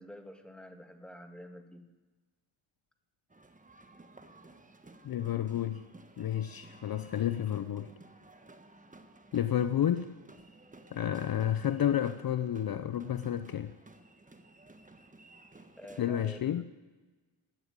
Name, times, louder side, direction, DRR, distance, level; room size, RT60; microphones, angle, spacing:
voice 1, 0.0-1.9 15.7-16.6, equal, ahead, 6 dB, 1.6 m, -48 dB
sound 1, 3.3-16.0, right 2 dB, 15° right, 1.3 m, -55 dB
voice 2, 5.0-5.8 6.2-7.9 9.3-10.2 10.9-13.7 16.0-16.6, left 10 dB, 50° left, 12 dB, 0.6 m, -31 dB
12.0 x 8.8 x 9.5 m, 1.3 s
cardioid pair, 65°, 48 cm